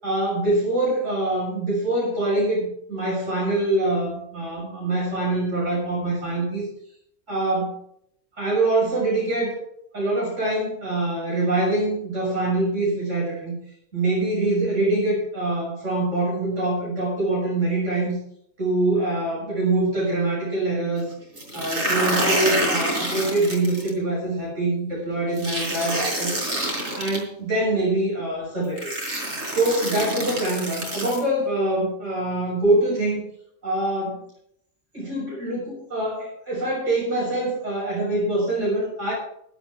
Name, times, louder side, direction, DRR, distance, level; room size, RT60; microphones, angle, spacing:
voice 1, 0.0-6.7 7.3-7.8 8.4-9.6 9.9-13.6 13.9-18.2 18.6-21.1 21.5-26.3 27.0-28.9 29.5-33.2 33.6-34.2 34.9-39.1, right 2 dB, 85° right, -5 dB, 7.1 m, -24 dB
sound 1, 21.4-23.9 25.4-27.2 28.2-28.3 28.8-31.2, right 1 dB, 65° right, 5.0 m, -27 dB
16.5 x 12.5 x 3.5 m, 0.69 s
omnidirectional pair, 1.3 m